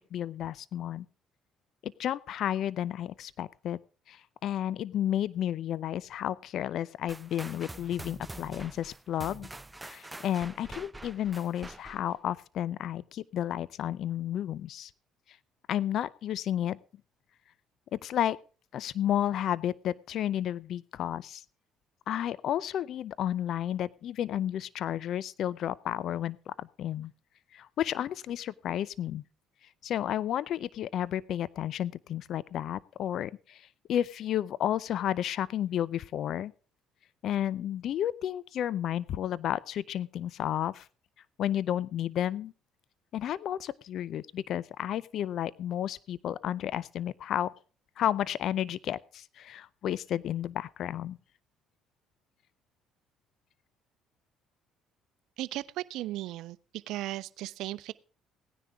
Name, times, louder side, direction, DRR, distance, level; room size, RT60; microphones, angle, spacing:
voice 1, 0.1-1.1 1.8-3.8 4.1-9.5 9.9-14.9 15.7-16.8 17.9-18.4 18.7-21.4 22.1-27.1 27.5-29.2 29.8-36.5 37.2-40.9 41.4-42.5 43.1-47.5 48.0-51.2, left 11 dB, 60° left, 0.5 m, -32 dB
sound 1, 7.1-12.2, right 2 dB, 15° right, 0.5 m, -45 dB
voice 2, 55.4-56.6 56.9-57.9, right 16 dB, 70° right, 0.6 m, -36 dB
17.0 x 10.0 x 3.5 m
supercardioid pair, 65°, 0 cm